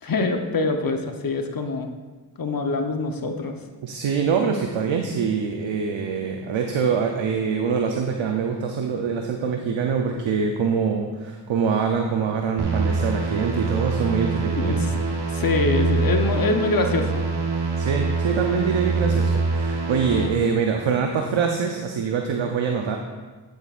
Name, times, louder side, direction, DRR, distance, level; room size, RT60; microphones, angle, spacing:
voice 1, 0.0-1.9 2.4-3.6 14.6-15.0 15.3-17.2, left 3 dB, 50° left, 4 dB, 0.9 m, -24 dB
voice 2, 3.8-14.8 15.2-15.4 17.8-23.0, right 6 dB, 80° right, 3 dB, 0.7 m, -24 dB
sound 1, 12.6-20.3, right 3 dB, 60° right, 1.4 m, -24 dB
8.8 x 8.0 x 2.5 m, 1.3 s
cardioid pair, 45°, 46 cm